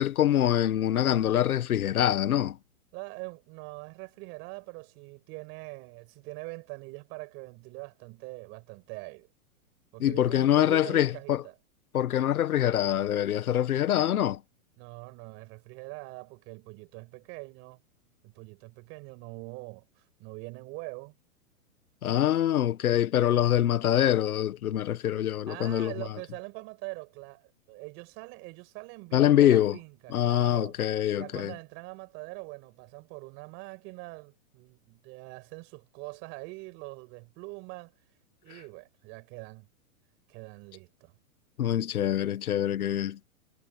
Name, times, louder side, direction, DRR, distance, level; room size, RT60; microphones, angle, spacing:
voice 1, 0.0-2.6 10.0-11.4 11.9-14.4 22.0-25.9 29.1-29.8 30.1-31.5 41.6-43.2, left 11 dB, 80° left, 1.5 m, -24 dB
voice 2, 2.9-9.3 9.9-11.5 14.8-17.8 18.2-21.2 25.5-30.8 31.1-37.9 38.4-39.7 40.3-41.2, right 27 dB, 30° right, 6.0 m, -43 dB
hypercardioid pair, 170°, 43 cm